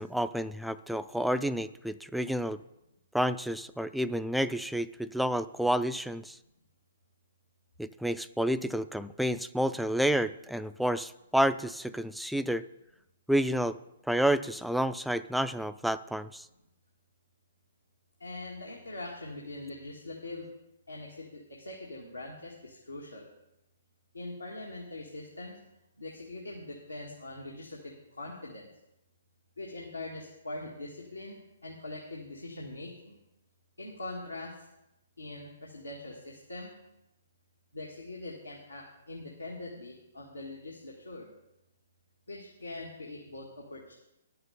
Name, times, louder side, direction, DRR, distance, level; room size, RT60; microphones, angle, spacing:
voice 1, 0.0-2.6 3.1-6.4 7.8-12.6 13.3-13.8 14.1-16.5, equal, ahead, 12 dB, 0.4 m, -29 dB
voice 2, 18.2-20.5 20.9-23.3 24.1-25.6 26.0-28.7 29.6-33.2 33.8-34.7 35.2-36.8 37.7-41.3 42.3-43.9, left 2 dB, 90° left, -3 dB, 1.8 m, -42 dB
11.0 x 6.8 x 6.9 m, 0.89 s
figure-of-eight pair, 125°, 0 cm